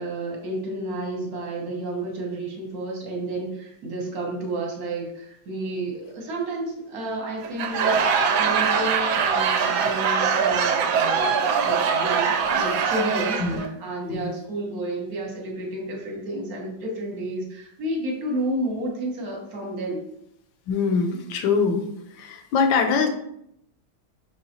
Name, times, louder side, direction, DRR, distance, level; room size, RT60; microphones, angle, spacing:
voice 1, 0.0-11.2 11.6-20.0, right 1 dB, 50° right, -1 dB, 1.4 m, -31 dB
Laughter / Crowd, 7.4-13.7, right 6 dB, 75° right, 1.3 m, -22 dB
voice 2, 20.7-21.9 22.2-23.1, left 5 dB, 75° left, 5 dB, 1.3 m, -23 dB
5.6 x 3.1 x 2.8 m, 0.75 s
omnidirectional pair, 2.3 m